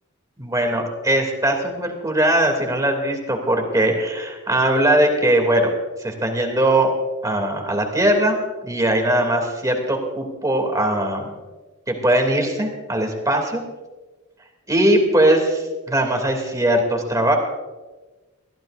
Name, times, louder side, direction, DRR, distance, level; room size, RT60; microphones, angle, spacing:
voice 1, 0.4-5.7 6.0-6.9 7.2-8.4 8.6-11.3 11.9-13.6 14.7-17.4, right 1 dB, 15° right, 3 dB, 2.8 m, -20 dB
23.5 x 15.5 x 2.7 m, 1.2 s
head